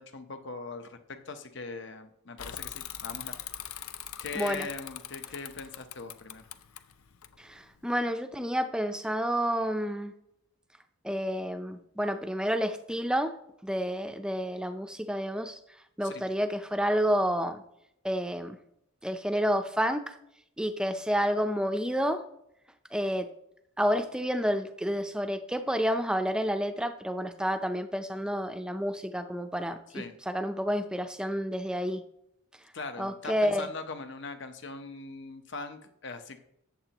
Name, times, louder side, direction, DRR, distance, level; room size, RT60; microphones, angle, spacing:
voice 1, 0.0-3.4 4.2-6.5 16.0-16.2 29.9-30.2 32.7-36.4, left 4 dB, 55° left, 7 dB, 0.9 m, -41 dB
Bicycle / Mechanisms, 2.4-7.8, left 11 dB, 80° left, 0.6 m, -42 dB
voice 2, 4.3-4.7 7.4-10.1 11.0-13.3 13.6-15.6 16.0-17.6 18.0-18.6 19.0-20.2 20.6-22.2 22.9-23.3 23.8-32.0 33.0-33.7, equal, 5° right, 7 dB, 0.5 m, -29 dB
14.0 x 8.8 x 3.0 m, 0.80 s
head